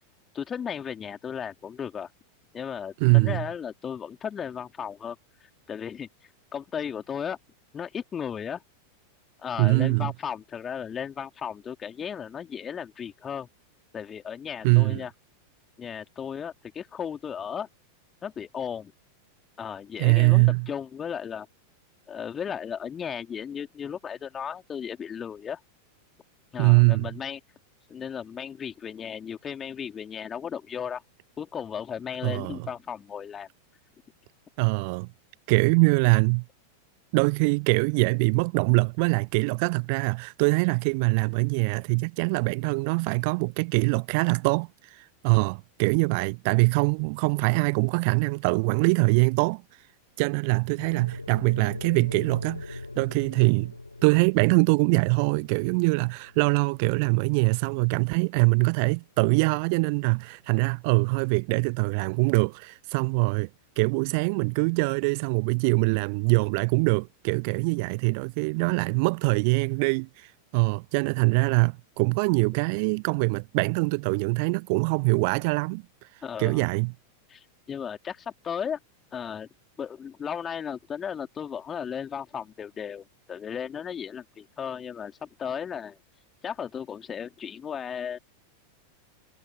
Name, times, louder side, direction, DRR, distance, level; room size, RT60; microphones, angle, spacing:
voice 1, 0.3-2.1 2.5-5.2 5.7-6.1 6.5-7.4 7.7-8.6 9.4-13.5 13.9-15.1 15.8-17.7 18.2-18.9 19.6-21.5 22.1-25.6 26.5-27.4 27.9-31.0 31.4-33.5 76.2-76.7 77.3-78.8 79.1-79.5 79.8-86.0 86.4-88.2, left 7 dB, 20° left, 3.6 m, -35 dB
voice 2, 3.0-3.5 9.6-10.1 14.6-15.0 20.0-20.7 26.6-27.1 32.2-32.7 34.6-35.1 35.5-36.4 37.1-49.6 50.2-53.7 54.0-63.5 63.8-75.8 76.4-76.9, right 32 dB, 45° right, 0.4 m, -23 dB
sound 1, 50.8-59.0, left 2 dB, 85° left, 6.7 m, -42 dB
figure-of-eight pair, 90°, 0 cm